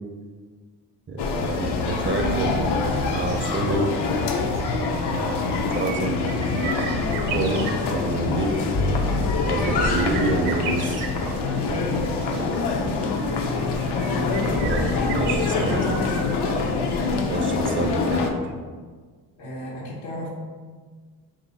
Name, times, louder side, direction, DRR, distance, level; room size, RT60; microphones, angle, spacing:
voice 1, 1.1-2.6 3.0-3.9 5.7-6.1 7.3-8.6 9.5-11.0 14.6-16.2 17.3-18.3, right 2 dB, 30° right, 2 dB, 0.5 m, -27 dB
sound 1, 1.2-18.3, left 3 dB, 65° left, 0.6 m, -25 dB
sound 2, 2.3-18.2 18.5-18.6, right 6 dB, 70° right, 0.6 m, -37 dB
Bowed string instrument, 8.7-15.2, left 2 dB, 25° left, 0.3 m, -34 dB
voice 2, 12.2-12.8 19.4-20.3, equal, 85° left, -3 dB, 1.0 m, -35 dB
2.7 x 2.7 x 3.8 m, 1.5 s
supercardioid pair, 55°, 44 cm